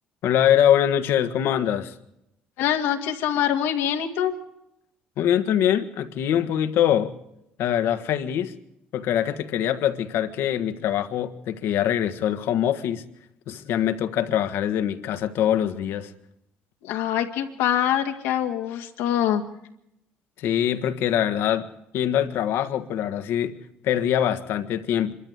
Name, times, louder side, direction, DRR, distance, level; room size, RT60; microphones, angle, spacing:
voice 1, 0.2-1.9 5.2-7.1 7.6-8.5 8.9-13.0 13.5-16.1 20.4-21.7 21.9-23.6 23.8-25.1, left 10 dB, 75° left, 9 dB, 1.5 m, -23 dB
voice 2, 2.6-4.3 16.8-19.4, left 10 dB, 90° left, 3 dB, 2.1 m, -24 dB
25.5 x 13.5 x 8.1 m, 0.81 s
cardioid pair, 95°, 4 cm